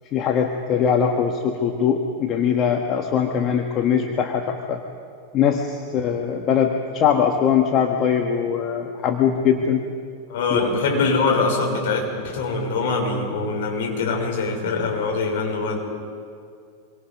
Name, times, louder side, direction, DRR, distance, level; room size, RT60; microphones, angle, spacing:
voice 1, 0.1-4.8 5.3-9.8 10.5-10.7, left 7 dB, 30° left, 3 dB, 1.7 m, -21 dB
voice 2, 10.3-15.8, left 4 dB, 55° left, 0 dB, 5.7 m, -23 dB
26.0 x 24.0 x 5.4 m, 2.3 s
figure-of-eight pair, 90°, 0 cm